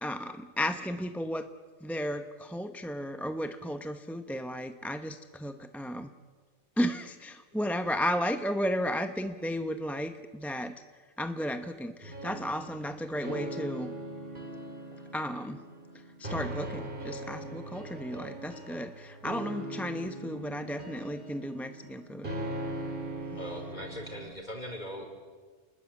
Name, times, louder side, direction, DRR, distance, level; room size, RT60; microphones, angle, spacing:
voice 1, 0.0-1.5 1.8-6.1 6.8-10.8 11.2-13.9 15.1-15.6 16.2-22.3, equal, ahead, 8 dB, 0.8 m, -34 dB
sound 1, 12.0-24.2, right 1 dB, 40° right, 3.9 m, -40 dB
voice 2, 23.3-25.1, equal, 35° left, 4 dB, 4.8 m, -40 dB
30.0 x 20.5 x 8.6 m, 1.5 s
omnidirectional pair, 1.3 m